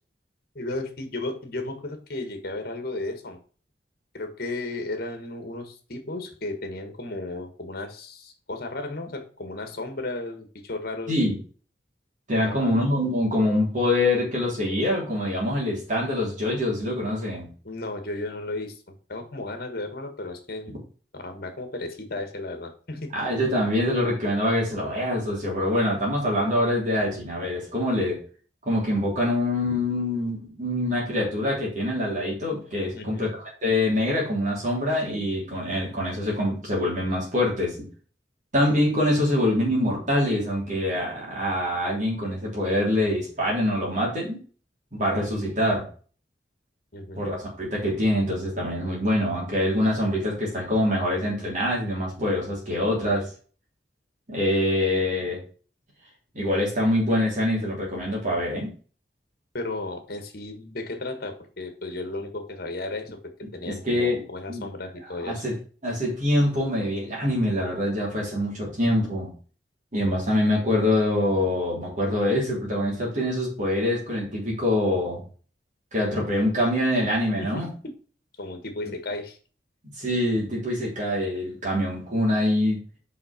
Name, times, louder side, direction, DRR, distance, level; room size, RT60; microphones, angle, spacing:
voice 1, 0.5-3.4 4.1-11.2 12.4-12.8 17.6-18.8 19.1-20.7 21.1-23.1 32.9-33.3 46.9-47.3 59.5-65.4 77.4-77.9 78.4-79.4, left 2 dB, 60° left, 7 dB, 1.6 m, -34 dB
voice 2, 11.1-11.4 12.3-17.5 23.1-28.2 28.6-37.9 38.5-44.4 44.9-45.9 47.1-53.3 54.3-55.4 56.3-58.7 63.6-64.2 64.5-64.6 65.2-65.5 65.8-69.3 69.9-75.2 75.9-77.7 79.9-82.8, left 1 dB, 45° right, -4 dB, 3.3 m, -25 dB
5.7 x 5.4 x 5.1 m, 0.40 s
head